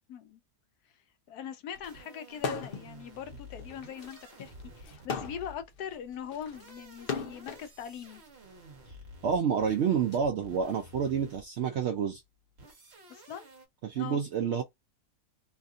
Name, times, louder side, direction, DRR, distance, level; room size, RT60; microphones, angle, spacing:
voice 1, 0.1-0.4 1.3-8.2 13.1-13.5 13.9-14.2, left 8 dB, 80° left, 1.2 m, -41 dB
sound 1, 1.7-5.8 6.4-11.6 12.6-13.7, equal, 45° right, 1.3 m, -51 dB
sound 2, 2.3-2.9 3.3-7.7 8.5-10.2, left 5 dB, 55° left, 0.6 m, -38 dB
voice 2, 9.2-12.2 13.8-14.6, right 7 dB, 70° right, 0.6 m, -28 dB
3.3 x 2.6 x 2.4 m
omnidirectional pair, 1.6 m